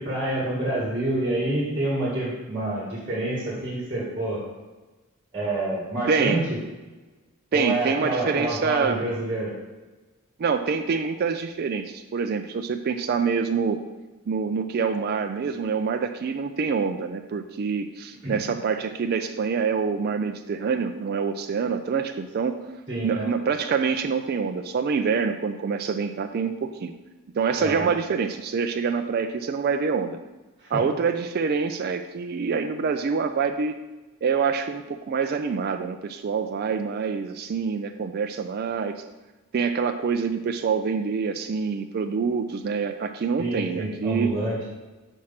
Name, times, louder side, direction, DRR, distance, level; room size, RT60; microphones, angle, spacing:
voice 1, 0.0-4.4 5.3-6.6 7.5-9.5 18.2-18.4 22.9-23.3 27.6-27.9 30.6-30.8 43.4-44.6, right 1 dB, 25° right, -5 dB, 1.8 m, -27 dB
voice 2, 6.1-6.4 7.5-9.0 10.4-13.8 14.3-22.6 23.0-26.9 27.4-30.2 30.7-33.8 34.2-39.0 39.5-44.4, right 5 dB, 45° right, 6 dB, 0.3 m, -26 dB
6.2 x 4.4 x 5.7 m, 1.2 s
head